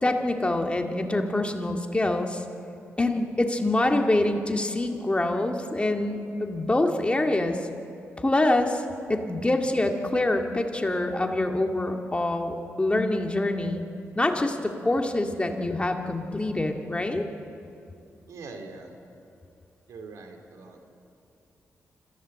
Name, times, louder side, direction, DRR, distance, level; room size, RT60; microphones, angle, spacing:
voice 1, 0.0-2.4 3.0-7.6 8.2-8.8 9.1-13.8 14.2-17.3, left 2 dB, 20° left, 3 dB, 2.0 m, -25 dB
voice 2, 18.3-18.9 19.9-20.9, right 3 dB, 85° right, 4 dB, 2.6 m, -42 dB
26.5 x 15.0 x 7.7 m, 2.6 s
cardioid pair, 70°, 5 cm